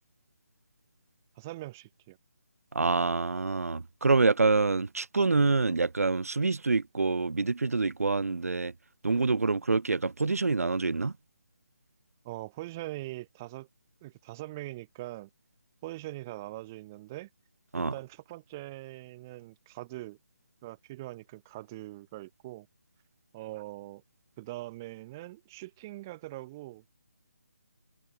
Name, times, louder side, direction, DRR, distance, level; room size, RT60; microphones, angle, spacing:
voice 1, 1.4-2.2 12.2-13.7 14.0-15.3 15.8-17.3 17.7-20.2 20.6-22.7 23.3-24.0 24.4-26.9, right 18 dB, 10° right, 1.2 m, -42 dB
voice 2, 2.7-8.7 9.0-11.1 17.7-17.9, right 3 dB, 85° right, 1.3 m, -26 dB
hypercardioid pair, 175°, 8 cm